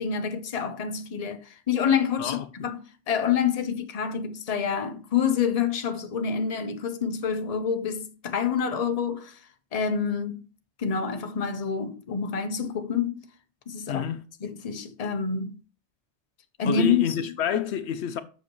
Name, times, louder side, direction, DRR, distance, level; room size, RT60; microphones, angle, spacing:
voice 1, 0.0-2.8 3.1-9.4 9.7-10.4 10.8-13.2 13.7-14.1 14.4-15.5 16.6-17.1, left 6 dB, 40° left, 0.8 m, -27 dB
voice 2, 2.2-2.7 13.9-14.2 16.6-18.2, left 8 dB, 75° left, 0.8 m, -29 dB
7.5 x 6.3 x 3.1 m
omnidirectional pair, 1.1 m